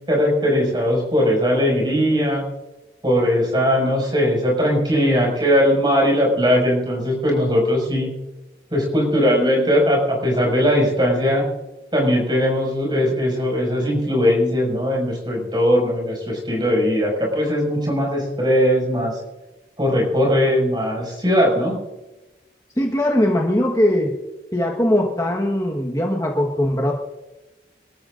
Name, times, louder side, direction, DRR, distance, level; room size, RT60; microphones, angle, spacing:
voice 1, 0.1-2.4 3.0-8.1 8.7-11.4 11.9-19.2 19.8-21.8, equal, 25° right, -1 dB, 6.3 m, -19 dB
voice 2, 22.8-24.1 24.5-26.9, left 1 dB, 20° left, -1 dB, 1.4 m, -20 dB
26.5 x 13.5 x 2.6 m, 1.1 s
head